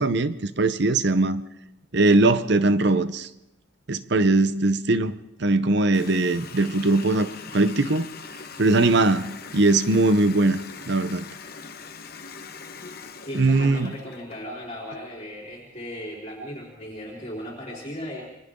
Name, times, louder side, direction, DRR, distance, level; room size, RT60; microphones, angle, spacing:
voice 1, 0.0-1.4 1.9-3.3 3.9-5.1 5.4-8.1 8.6-10.6 10.9-11.2 13.3-13.9, right 2 dB, 55° right, 0.9 m, -20 dB
Water tap faucet, 5.9-14.5, left 5 dB, 45° left, 1.3 m, -41 dB
voice 2, 13.2-18.2, equal, 30° left, 4.4 m, -37 dB
29.5 x 23.5 x 3.8 m
head